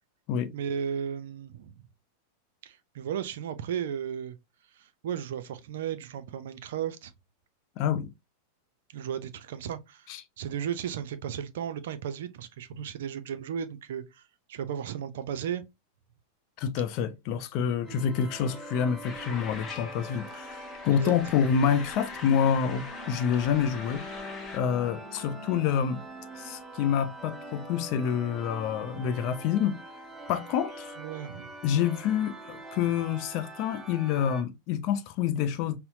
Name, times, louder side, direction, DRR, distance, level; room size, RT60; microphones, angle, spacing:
voice 1, 0.5-1.8 2.6-4.4 4.8-7.1 8.9-10.1 10.4-14.2 14.5-15.6 17.9-18.1 20.9-21.1 31.0-31.5, right 8 dB, 55° right, 0.4 m, -35 dB
voice 2, 7.8-8.1 10.1-10.2 16.6-24.0 24.5-26.0 26.4-29.8 30.3-31.0 31.6-35.8, left 8 dB, 40° left, 0.5 m, -27 dB
sound 1, 17.8-34.4, right 1 dB, 10° right, 0.7 m, -44 dB
sound 2, 19.0-24.6, left 4 dB, 20° left, 1.0 m, -43 dB
5.5 x 2.0 x 2.6 m
figure-of-eight pair, 90°, 0 cm